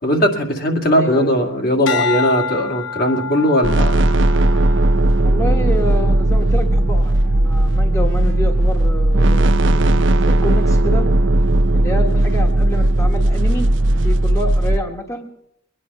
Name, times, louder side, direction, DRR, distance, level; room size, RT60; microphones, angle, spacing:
voice 1, 0.0-4.0, equal, 55° left, 2 dB, 2.2 m, -18 dB
voice 2, 0.9-1.4 5.2-11.0 11.7-13.7 14.0-15.5, left 1 dB, 15° left, 2 dB, 1.3 m, -28 dB
sound 1, 1.9-6.3 6.9-7.3, left 5 dB, 80° left, 0.8 m, -28 dB
sound 2, 3.6-14.8, right 1 dB, 70° right, 0.6 m, -16 dB
23.0 x 10.0 x 5.5 m, 0.76 s
head